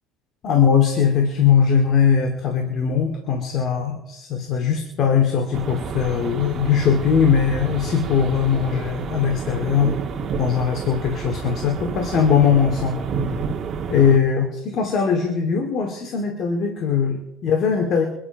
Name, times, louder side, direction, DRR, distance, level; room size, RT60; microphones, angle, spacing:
voice 1, 0.4-10.0 10.4-13.0 13.9-18.0, left 7 dB, 45° left, 4 dB, 2.4 m, -20 dB
sound 1, 5.5-14.2, right 5 dB, 35° right, 1.9 m, -30 dB
24.0 x 10.0 x 5.4 m, 0.92 s
cardioid pair, 135°, 0 cm